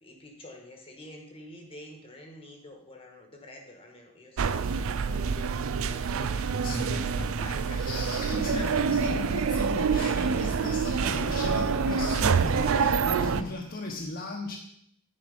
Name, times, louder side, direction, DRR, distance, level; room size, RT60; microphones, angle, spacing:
voice 1, 0.0-7.9 8.5-8.7, left 1 dB, 25° left, 2 dB, 1.3 m, -48 dB
sound 1, 4.4-13.4, right 5 dB, 65° right, 0.4 m, -27 dB
voice 2, 6.6-14.6, left 2 dB, 45° left, -3 dB, 1.1 m, -36 dB
10.5 x 5.0 x 5.2 m, 0.72 s
head